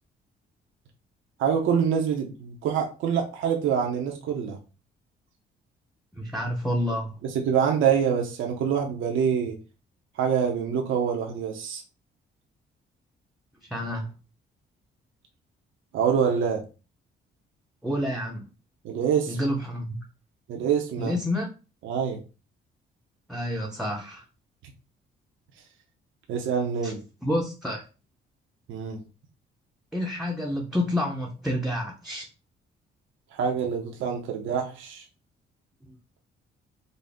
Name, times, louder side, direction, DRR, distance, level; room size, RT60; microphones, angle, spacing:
voice 1, 1.4-4.6 7.2-9.6 10.2-11.8 15.9-16.6 18.8-19.4 20.5-21.1 21.8-22.2 26.3-27.0 28.7-29.0 33.3-35.0, right 7 dB, 80° right, 2 dB, 0.7 m, -25 dB
voice 2, 6.2-7.1 13.6-14.1 17.8-18.5 19.3-19.9 21.0-21.5 23.3-24.2 26.8-26.9 27.2-27.8 29.9-32.3 35.8-36.0, left 1 dB, ahead, -1 dB, 0.7 m, -29 dB
3.9 x 2.0 x 3.4 m, 0.32 s
cardioid pair, 90°, 20 cm